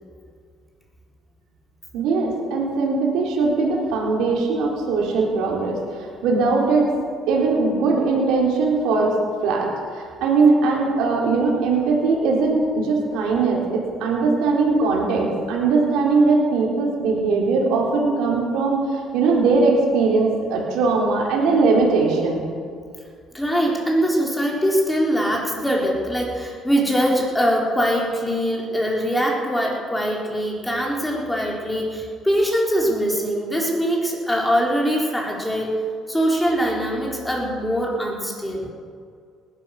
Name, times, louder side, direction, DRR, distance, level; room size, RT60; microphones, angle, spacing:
voice 1, 1.9-6.8 7.3-9.2 9.4-9.7 9.9-18.9 19.1-22.4, right 4 dB, 85° right, -2 dB, 4.1 m, -20 dB
voice 2, 23.3-35.7 36.1-38.7, equal, 5° left, -2 dB, 4.2 m, -22 dB
19.5 x 11.0 x 6.6 m, 2.2 s
cardioid pair, 120°, 0 cm